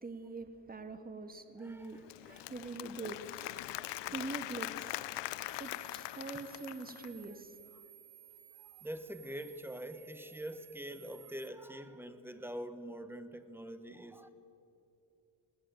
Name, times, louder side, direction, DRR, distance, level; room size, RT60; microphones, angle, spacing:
voice 1, 0.0-3.5 4.1-4.7 5.6-7.5, right 3 dB, 20° right, 8 dB, 1.8 m, -44 dB
voice 2, 1.6-2.6 3.4-3.8 4.1-4.2 4.9-5.7 7.1-7.2 7.7-7.8 8.6-14.3, equal, 5° right, 10 dB, 1.3 m, -46 dB
Applause / Crowd, 1.8-7.2, left 16 dB, 75° left, 0.6 m, -42 dB
sound 1, 5.5-11.5, right 13 dB, 80° right, 2.2 m, -57 dB
21.0 x 17.0 x 9.2 m, 2.8 s
cardioid pair, 115°, 43 cm